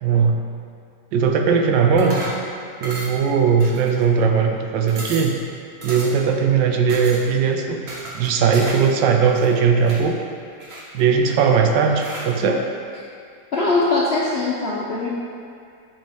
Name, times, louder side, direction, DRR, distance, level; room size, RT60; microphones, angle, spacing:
voice 1, 0.0-0.4 1.1-2.2 2.8-5.4 5.8-7.8 8.1-10.2 10.9-12.6, right 6 dB, 85° right, 3 dB, 1.3 m, -18 dB
sound 1, 2.0-2.4 2.8-3.3 3.6-4.2 4.6-4.7 4.9-5.4 5.8-6.3 6.9-7.2 7.9-8.9 9.2-10.0 10.6-11.3 12.0-12.3, right 1 dB, 40° right, 1.0 m, -34 dB
voice 2, 13.5-15.1, left 3 dB, 60° left, -6 dB, 0.6 m, -21 dB
7.5 x 5.2 x 3.5 m, 2.3 s
omnidirectional pair, 2.0 m